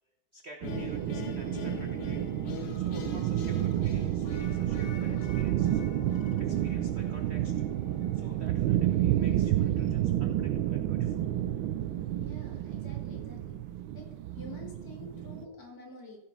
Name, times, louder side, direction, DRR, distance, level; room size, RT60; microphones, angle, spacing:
voice 1, 0.3-2.2 2.7-7.5 8.1-11.3, right 2 dB, 55° right, 3 dB, 0.7 m, -51 dB
sound 1, 0.6-7.7, left 6 dB, 65° left, 1.5 m, -44 dB
sound 2, 0.6-15.4, right 12 dB, 75° right, 1.3 m, -30 dB
sound 3, 1.5-8.5, left 11 dB, 85° left, 1.5 m, -50 dB
voice 2, 12.0-13.6 13.9-14.1 14.3-16.2, left 2 dB, 45° left, -1 dB, 2.7 m, -48 dB
15.0 x 5.0 x 5.3 m, 0.97 s
omnidirectional pair, 2.3 m